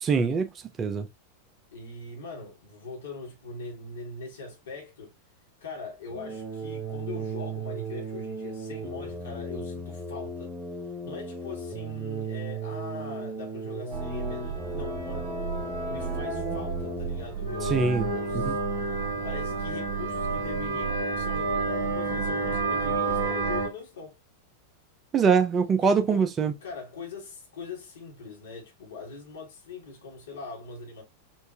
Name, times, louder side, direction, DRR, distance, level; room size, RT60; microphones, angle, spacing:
voice 1, 0.0-0.5 0.8-1.1 17.7-18.1 18.5-18.6 25.1-26.5, right 5 dB, 25° right, 0.5 m, -23 dB
voice 2, 1.7-5.1 5.6-10.5 11.0-15.4 15.8-18.6 19.2-24.2 25.8-26.2 26.6-31.0, left 4 dB, 65° left, 1.5 m, -41 dB
sound 1, 6.1-17.4, right 2 dB, 5° right, 1.0 m, -36 dB
sound 2, 13.9-23.7, right 4 dB, 50° right, 1.4 m, -30 dB
4.4 x 2.5 x 2.8 m
figure-of-eight pair, 90°, 0 cm